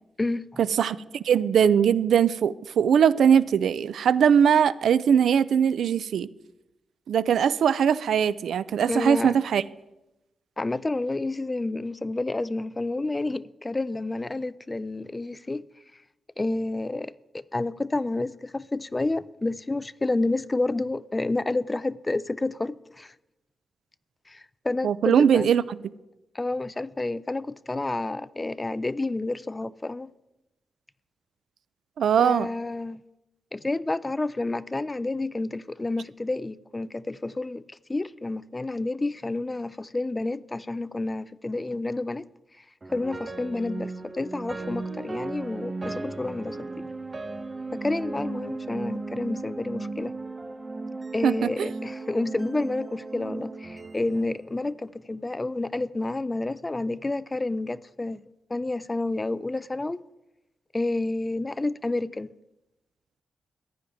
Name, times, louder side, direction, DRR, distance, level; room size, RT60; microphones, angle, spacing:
voice 1, 0.2-0.6 8.9-9.4 10.6-15.7 16.4-23.1 24.3-25.5 26.3-30.1 32.2-33.0 33.5-37.6 37.9-42.2 42.9-46.9 47.7-50.1 51.1-58.2 58.5-60.0 60.7-62.3, left 2 dB, 20° left, 0.3 m, -29 dB
voice 2, 0.8-6.3 7.1-9.6 24.8-25.6 32.0-32.5 51.2-51.7, right 8 dB, 90° right, 0.4 m, -21 dB
sound 1, 42.8-55.1, right 3 dB, 25° right, 0.6 m, -36 dB
14.5 x 10.0 x 3.5 m
wide cardioid pair, 145°, 0 cm